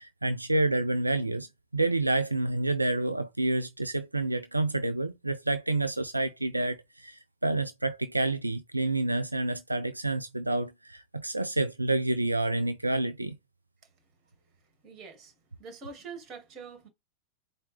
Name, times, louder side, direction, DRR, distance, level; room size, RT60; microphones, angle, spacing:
voice 1, 0.0-1.5 1.7-13.4, right 2 dB, 85° right, 0.3 m, -28 dB
voice 2, 14.8-15.3 15.6-16.9, right 5 dB, 30° right, 2.2 m, -44 dB
4.3 x 2.6 x 3.3 m
figure-of-eight pair, 90°, 0 cm